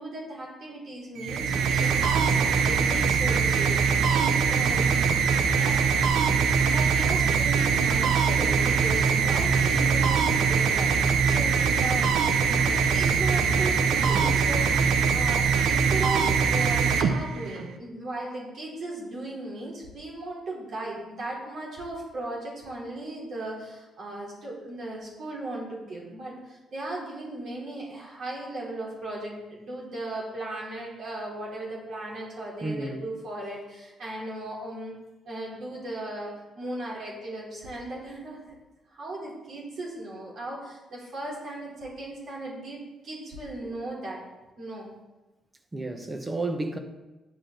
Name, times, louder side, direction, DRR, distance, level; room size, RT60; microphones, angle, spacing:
voice 1, 0.0-4.9 5.5-5.8 6.5-12.1 12.5-34.9 35.2-38.4 38.9-44.2 44.6-44.9, right 2 dB, 60° right, 3.6 m, -37 dB
sound 1, 1.2-17.7, right 6 dB, 80° right, 0.8 m, -23 dB
voice 2, 14.1-14.5 32.6-33.0 45.7-46.8, right 2 dB, 20° right, 1.3 m, -32 dB
9.8 x 8.6 x 3.9 m
cardioid pair, 90°, 0 cm